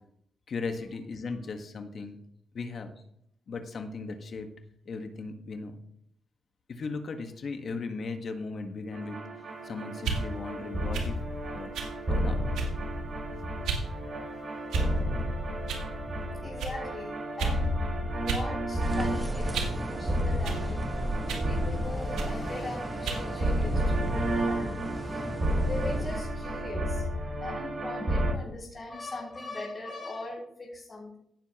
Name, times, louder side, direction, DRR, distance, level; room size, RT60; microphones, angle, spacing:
voice 1, 0.5-2.2 2.5-3.0 3.5-4.5 4.8-5.7 6.7-9.2 9.6-11.2 11.5-11.7 12.1-12.4, left 4 dB, 55° left, 6 dB, 1.5 m, -37 dB
sound 1, 8.9-28.3, equal, 45° right, 5.0 m, -31 dB
sound 2, 10.0-10.2 10.9-11.1 11.7-11.9 12.5-12.9 13.6-13.9 14.7-15.1 15.7-15.9 16.6-16.8 17.4-17.6 18.3-18.5 18.8-19.8 20.4-20.6 21.3-21.5 22.2-22.4 23.0-23.3, right 5 dB, 85° right, 1.9 m, -33 dB
voice 2, 16.4-17.8 18.1-20.9 21.3-27.0 27.4-31.2, left 2 dB, 35° left, -5 dB, 3.7 m, -40 dB
sound 3, 18.8-26.2, right 1 dB, 20° right, 1.4 m, -36 dB
16.5 x 6.9 x 3.0 m, 0.72 s
supercardioid pair, 65°, 0 cm